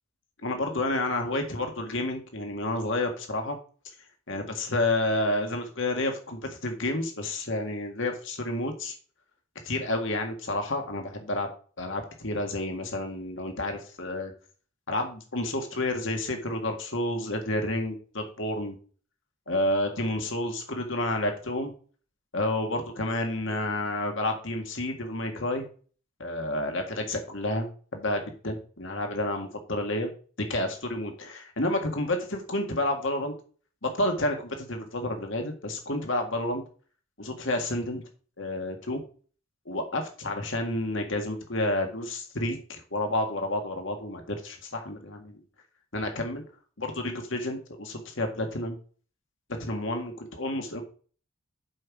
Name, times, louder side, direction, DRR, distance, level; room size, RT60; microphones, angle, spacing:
voice 1, 0.4-3.6 4.3-8.9 9.6-11.5 11.8-14.3 14.9-18.8 19.5-21.7 22.3-25.7 26.2-30.1 30.4-33.3 33.8-36.6 37.2-38.0 38.4-39.0 39.7-45.4 45.9-46.4 46.8-48.8 49.6-50.8, left 1 dB, 60° left, 4 dB, 1.9 m, -30 dB
7.7 x 5.7 x 4.7 m, 0.40 s
head